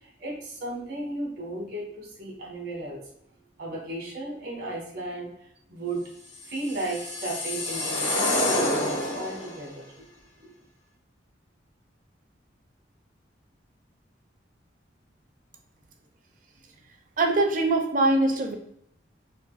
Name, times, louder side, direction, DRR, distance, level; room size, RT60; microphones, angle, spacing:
voice 1, 0.0-3.0 3.6-5.3 5.7-6.0 6.5-9.9 10.4-10.5, right 1 dB, 75° right, -2 dB, 1.5 m, -34 dB
sound 1, 6.4-9.6, left 1 dB, 80° left, 1.2 m, -28 dB
voice 2, 17.2-18.6, right 2 dB, 45° right, 4 dB, 0.6 m, -22 dB
5.2 x 2.6 x 2.4 m, 0.71 s
head